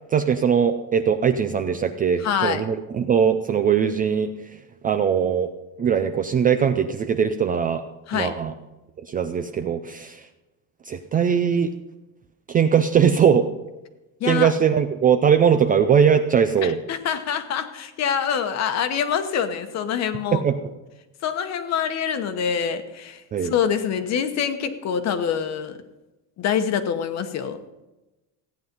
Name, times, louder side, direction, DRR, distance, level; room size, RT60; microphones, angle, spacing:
voice 1, 0.1-4.3 4.8-5.5 5.8-7.8 8.1-8.5 9.1-10.2 10.9-11.7 12.5-13.5 14.2-16.8 20.3-20.5 23.3-23.5, right 7 dB, 25° right, 8 dB, 0.4 m, -20 dB
voice 2, 2.2-2.6 8.1-8.3 14.2-14.5 16.6-20.4 21.2-25.8 26.4-27.6, left 8 dB, 40° left, 9 dB, 1.1 m, -25 dB
15.5 x 9.6 x 5.3 m, 1.1 s
cardioid pair, 160°, 39 cm